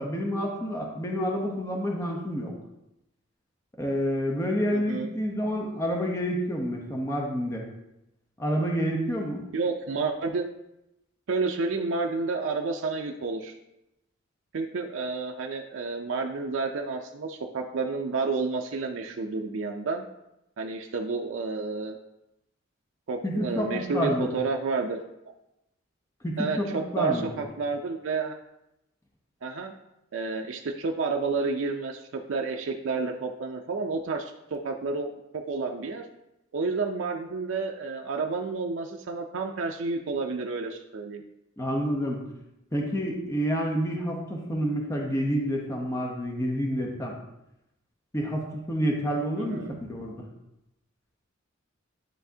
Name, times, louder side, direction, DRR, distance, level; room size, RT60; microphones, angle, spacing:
voice 1, 0.0-2.5 3.8-7.6 8.4-9.4 23.2-24.3 26.2-27.3 41.6-42.2 42.7-47.1 48.1-49.6 49.9-50.2, equal, 15° left, -1 dB, 0.8 m, -28 dB
voice 2, 4.7-5.1 9.5-10.5 11.3-13.5 14.5-20.1 20.6-22.0 23.1-25.0 26.4-28.3 29.4-29.7 30.1-35.1 35.5-36.0 36.5-41.2 49.4-49.8, right 4 dB, 70° right, 2 dB, 0.4 m, -30 dB
10.0 x 3.4 x 2.7 m, 0.88 s
head